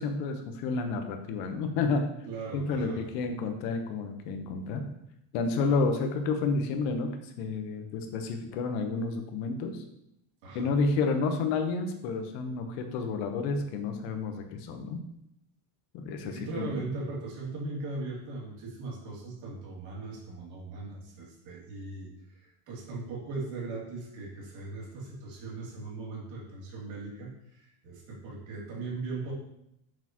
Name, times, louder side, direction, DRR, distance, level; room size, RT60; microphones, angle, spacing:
voice 1, 0.0-2.1 2.5-4.9 5.3-9.8 10.5-15.0 15.9-16.8, left 4 dB, 80° left, 6 dB, 1.2 m, -30 dB
voice 2, 2.3-3.0 10.4-10.7 16.2-29.3, right 3 dB, 65° right, -4 dB, 2.7 m, -39 dB
6.8 x 6.0 x 3.0 m, 0.78 s
cardioid pair, 160°, 49 cm